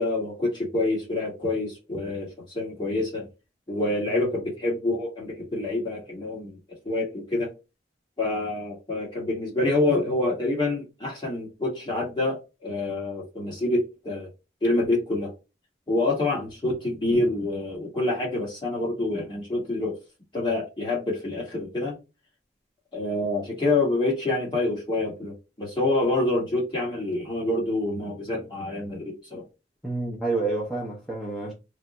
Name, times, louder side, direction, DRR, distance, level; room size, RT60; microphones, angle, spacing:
voice 1, 0.0-3.3 3.7-6.6 6.8-7.5 8.2-14.3 14.6-15.3 15.9-20.0 20.3-22.0 22.9-29.4, left 2 dB, 25° left, 1.3 m, -27 dB
voice 2, 29.8-31.5, right 3 dB, 5° left, 0.7 m, -29 dB
3.3 x 2.0 x 3.8 m
head